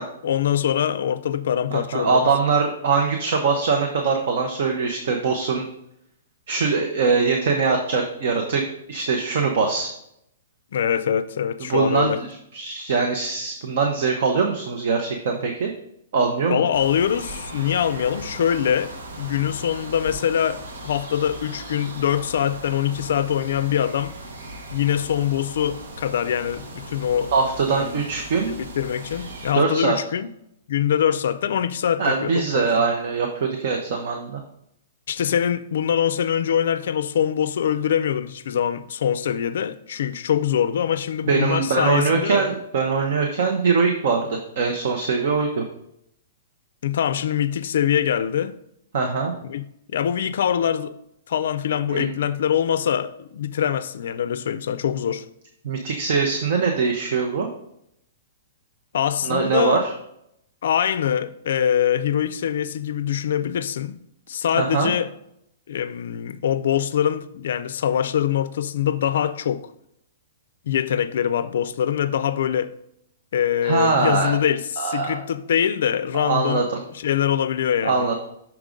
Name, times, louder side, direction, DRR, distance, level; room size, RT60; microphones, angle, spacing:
voice 1, 0.0-2.2 10.7-12.2 16.5-24.1 24.7-27.3 27.7-28.0 28.5-30.3 30.7-32.7 35.1-42.5 46.8-48.6 49.4-49.6 49.9-50.9 51.3-55.3 58.9-59.8 60.6-64.0 64.3-65.1 65.7-69.7 70.7-72.7 73.3-76.6 76.9-78.1, left 9 dB, 55° left, 0.4 m, -23 dB
voice 2, 1.7-5.7 6.5-9.9 11.6-15.7 16.1-16.7 27.3-28.5 29.5-30.0 32.0-34.4 41.3-45.6 48.9-49.3 51.9-52.1 55.6-57.5 59.2-59.9 64.6-64.9 73.6-74.4 74.8-75.2 76.1-76.8 77.8-78.1, right 5 dB, 45° right, 0.7 m, -22 dB
sound 1, 16.7-29.5, right 1 dB, 80° right, 1.2 m, -38 dB
5.9 x 3.7 x 5.1 m
hypercardioid pair, 175°, 0 cm